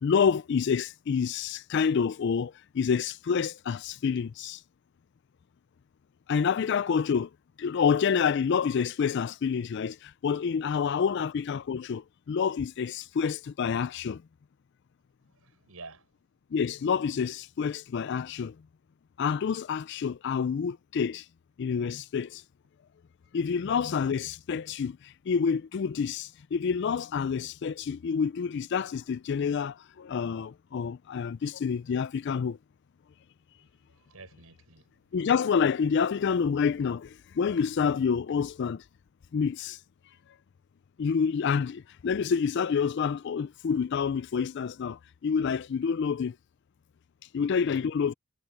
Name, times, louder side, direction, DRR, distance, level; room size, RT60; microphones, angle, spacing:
voice 1, 0.0-4.6 6.3-7.3 7.6-14.2 16.5-18.6 19.2-21.3 21.6-22.4 23.3-32.6 35.1-38.8 39.3-39.8 41.0-46.4 47.3-48.1, left 6 dB, 55° left, 0.4 m, -28 dB
voice 2, 15.3-16.1 33.9-34.9 47.7-47.8, right 3 dB, 85° right, 5.1 m, -49 dB
head